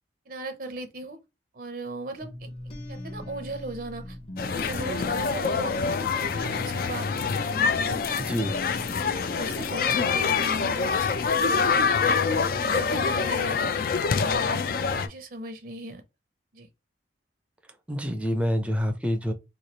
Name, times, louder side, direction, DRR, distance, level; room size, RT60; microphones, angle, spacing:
voice 1, 0.3-1.2 1.5-2.5 2.9-8.0 9.0-10.9 11.3-11.7 12.5-13.9 14.2-14.6 15.0-16.0 16.5-16.7, right 2 dB, 50° right, 0.6 m, -38 dB
sound 1, 2.2-10.9, left 1 dB, 35° left, 0.8 m, -41 dB
sound 2, 4.4-15.1, left 5 dB, 55° left, 0.4 m, -25 dB
voice 2, 8.2-8.5 17.9-19.3, equal, 5° right, 0.5 m, -27 dB
3.1 x 2.4 x 4.0 m
head